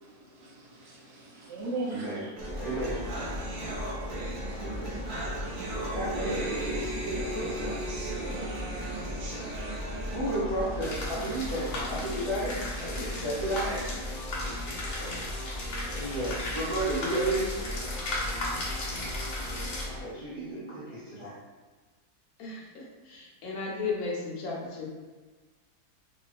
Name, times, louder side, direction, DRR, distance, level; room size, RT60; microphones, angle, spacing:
voice 1, 0.0-2.3 2.7-2.9, right 2 dB, 60° right, -4 dB, 0.8 m, -38 dB
voice 2, 1.9-2.2 2.6-3.0 4.6-5.1 5.7-7.9 8.1-8.6 8.9-9.3 10.1-13.9 14.4-14.5 15.0-15.2 15.9-17.5 20.0-21.4, right 1 dB, 40° right, -10 dB, 0.4 m, -33 dB
sound 1, 2.4-20.0, left 1 dB, 5° right, 1.0 m, -37 dB
sound 2, 2.4-10.4, right 2 dB, 90° right, 1.2 m, -37 dB
sound 3, 10.8-19.9, left 2 dB, 90° left, 1.2 m, -37 dB
voice 3, 22.4-24.9, left 4 dB, 70° left, -4 dB, 1.2 m, -35 dB
2.9 x 2.6 x 2.4 m, 1.4 s
omnidirectional pair, 1.6 m